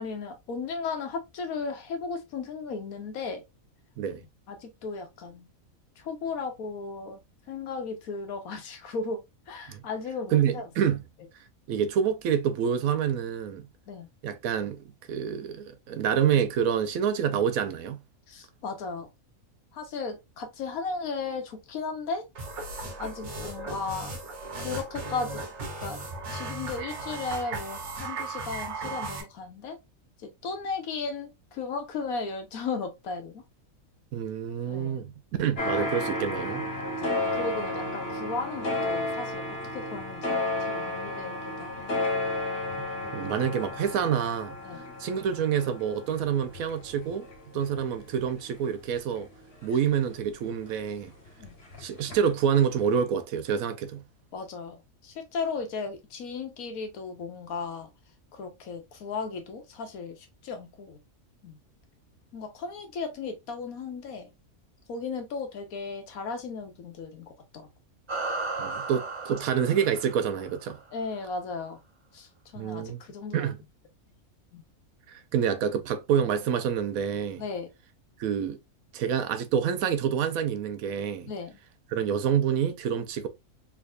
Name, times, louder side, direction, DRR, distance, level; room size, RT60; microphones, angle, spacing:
voice 1, 0.0-3.4 4.5-5.5 6.0-7.2 7.5-9.2 9.5-10.7 13.9-14.1 18.3-19.1 19.7-22.2 23.0-24.2 24.6-25.4 25.8-26.0 26.3-29.8 30.2-33.4 34.7-35.0 36.8-42.0 43.0-43.4 44.6-44.8 47.5-47.6 51.4-51.5 54.3-57.9 58.3-61.0 61.4-61.6 62.3-64.3 64.9-67.7 70.9-71.8 72.1-73.5 74.5-74.6 77.4-77.7 81.3-81.5, left 4 dB, 85° left, 1.3 m, -36 dB
voice 2, 10.3-11.0 11.7-13.7 14.2-14.8 15.1-18.0 34.1-35.1 35.4-36.6 43.1-44.6 45.0-47.3 47.5-49.3 49.6-51.1 51.8-54.0 68.6-70.8 72.6-73.0 73.3-73.6 75.1-77.4 78.2-78.6 78.9-81.3 81.9-83.3, right 8 dB, 80° right, 1.0 m, -27 dB
sound 1, 22.4-29.2, right 3 dB, 55° right, 1.3 m, -36 dB
sound 2, 35.6-50.7 51.0-52.4 52.7-52.8, left 2 dB, 45° left, 1.3 m, -33 dB
sound 3, 68.1-70.8, right 3 dB, 25° right, 0.8 m, -35 dB
3.6 x 3.1 x 2.4 m
omnidirectional pair, 1.5 m